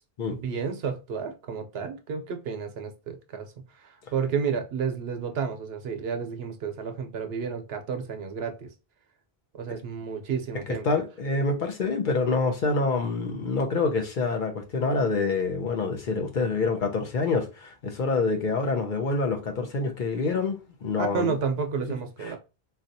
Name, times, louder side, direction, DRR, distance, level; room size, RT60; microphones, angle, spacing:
voice 1, 0.3-3.5 4.1-8.7 9.5-10.9 21.0-22.4, right 6 dB, 75° right, 0.9 m, -31 dB
voice 2, 10.5-21.4 22.2-22.4, left 3 dB, 55° left, 0.7 m, -26 dB
4.1 x 2.3 x 2.6 m
omnidirectional pair, 1.0 m